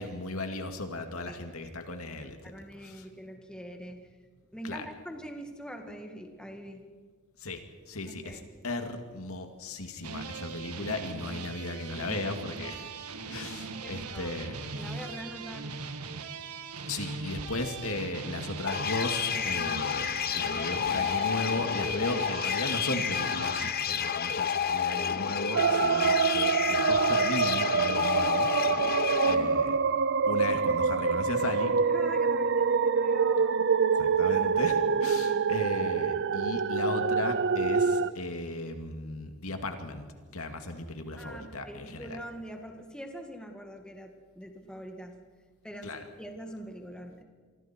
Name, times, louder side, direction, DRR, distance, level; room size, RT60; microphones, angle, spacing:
voice 1, 0.0-2.5 2.8-3.1 4.6-4.9 7.4-12.8 13.3-14.5 14.9-15.0 16.9-28.5 29.2-29.8 30.3-31.8 34.0-40.1 40.3-42.2 45.8-46.0, left 2 dB, 70° left, 5 dB, 2.4 m, -36 dB
voice 2, 2.4-4.2 4.5-6.9 8.1-8.5 13.8-14.4 14.7-16.3 29.1-29.5 31.9-33.7 41.2-45.2 45.6-47.2, equal, 5° left, 3 dB, 2.0 m, -44 dB
sound 1, 10.0-23.7, right 4 dB, 90° right, 1.7 m, -40 dB
sound 2, 18.7-29.3, left 7 dB, 45° left, 0.9 m, -30 dB
sound 3, 25.5-38.1, right 5 dB, 55° right, 0.6 m, -26 dB
28.5 x 24.5 x 4.6 m, 1.6 s
head